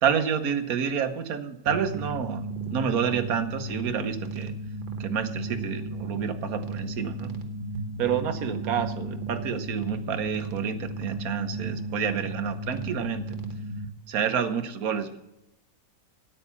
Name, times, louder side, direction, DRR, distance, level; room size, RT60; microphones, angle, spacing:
voice 1, 0.0-4.5 5.0-7.3 8.0-13.4 14.1-15.2, right 7 dB, 70° right, 9 dB, 1.4 m, -29 dB
sound 1, 1.7-13.9, right 2 dB, 35° right, 1.1 m, -34 dB
9.1 x 9.0 x 6.9 m, 0.90 s
omnidirectional pair, 1.6 m